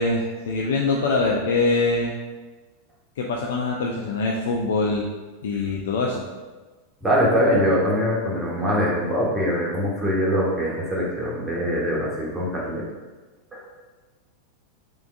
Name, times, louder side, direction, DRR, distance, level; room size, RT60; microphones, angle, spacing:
voice 1, 0.0-2.2 3.2-5.1 5.4-6.2, left 3 dB, 70° left, 0 dB, 0.3 m, -23 dB
voice 2, 7.0-12.8 13.5-13.6, equal, 15° right, -5 dB, 1.2 m, -23 dB
3.7 x 3.4 x 2.3 m, 1.3 s
hypercardioid pair, 95°, 0 cm